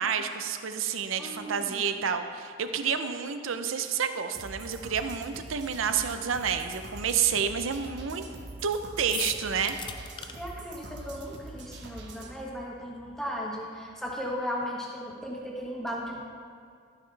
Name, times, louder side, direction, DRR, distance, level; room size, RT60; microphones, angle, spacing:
voice 1, 0.0-8.2 8.6-9.8, right 7 dB, 90° right, 8 dB, 0.6 m, -29 dB
voice 2, 1.2-1.9 10.4-16.2, equal, ahead, -3 dB, 1.2 m, -36 dB
sound 1, 4.3-12.3, right 2 dB, 60° right, 1.0 m, -44 dB
sound 2, 9.1-10.3, left 7 dB, 25° left, 0.4 m, -37 dB
13.0 x 8.8 x 3.3 m, 2.3 s
head